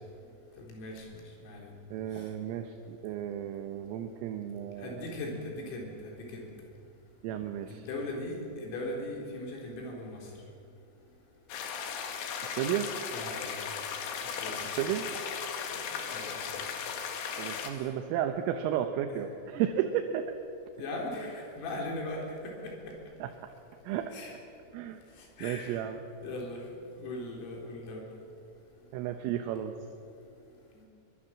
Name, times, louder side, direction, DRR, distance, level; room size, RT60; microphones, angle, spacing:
voice 1, 0.6-1.1 1.4-1.7 4.8-6.5 7.7-10.2 13.1-13.5 14.4-14.6 15.7-15.8 16.1-16.6 19.1-19.2 20.8-22.7 24.1-24.4 25.4-25.8 26.2-28.0 30.7-30.8, left 2 dB, 85° left, -1 dB, 6.7 m, -39 dB
voice 2, 1.9-5.1 7.2-7.8 12.5-12.9 14.8-15.1 17.4-20.3 23.2-23.3 23.9-24.1 24.7-25.0 25.4-26.0 28.9-29.7, right 10 dB, 80° right, 6 dB, 3.6 m, -33 dB
sound 1, 11.5-17.7, left 7 dB, 65° left, 3.6 m, -37 dB
23.0 x 22.0 x 7.4 m, 2.5 s
omnidirectional pair, 5.9 m